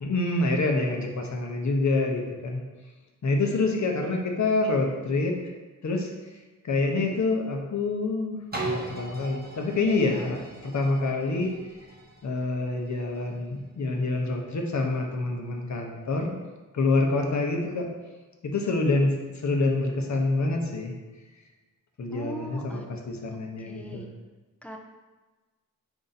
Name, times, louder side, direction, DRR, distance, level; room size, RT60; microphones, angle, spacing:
voice 1, 0.0-2.6 3.2-5.4 5.8-6.1 6.6-8.4 8.6-11.5 12.2-16.3 16.7-17.9 18.4-19.1 19.4-20.9 22.0-24.1, left 3 dB, 55° left, 2 dB, 0.7 m, -26 dB
sound 1, 8.5-14.3 14.8-14.9, right 2 dB, 25° right, 0.8 m, -39 dB
voice 2, 22.1-22.9 23.3-23.4 23.6-24.1 24.6-24.8, left 1 dB, 5° left, 1 dB, 0.4 m, -40 dB
4.6 x 2.7 x 3.9 m, 1.2 s
wide cardioid pair, 130°, 35 cm